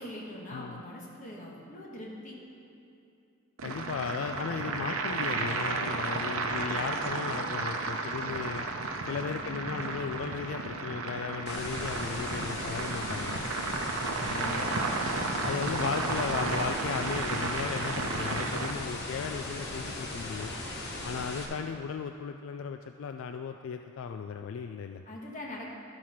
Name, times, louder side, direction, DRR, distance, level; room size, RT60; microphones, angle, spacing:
voice 1, 0.0-2.4 9.3-9.9 14.4-15.0 15.3-16.5 25.1-25.7, left 1 dB, 35° left, -3 dB, 1.5 m, -42 dB
voice 2, 0.5-0.8 3.6-8.7 9.0-13.4 14.1-14.7 15.4-20.5 21.0-25.0, left 6 dB, 70° left, 6 dB, 0.3 m, -36 dB
sound 1, 3.6-18.7, right 3 dB, 85° right, 0.7 m, -33 dB
sound 2, 11.5-21.5, left 2 dB, 55° left, 1.2 m, -38 dB
12.0 x 4.7 x 5.7 m, 2.6 s
head